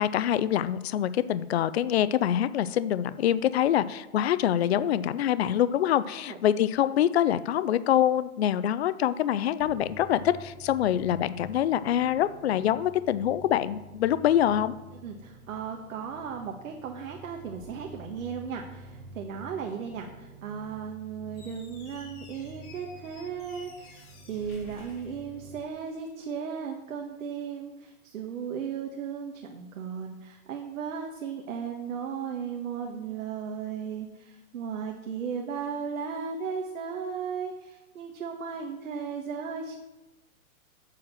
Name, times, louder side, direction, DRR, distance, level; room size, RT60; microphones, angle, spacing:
voice 1, 0.0-14.7, left 11 dB, 50° left, 15 dB, 0.4 m, -25 dB
sound 1, 9.6-25.6, right 1 dB, 45° right, 1.2 m, -49 dB
voice 2, 15.0-39.8, right 6 dB, 65° right, 2 dB, 1.4 m, -36 dB
Squeak, 21.3-25.9, left 3 dB, 30° left, 2.4 m, -52 dB
7.6 x 6.4 x 7.3 m, 1.0 s
hypercardioid pair, 165°, 43 cm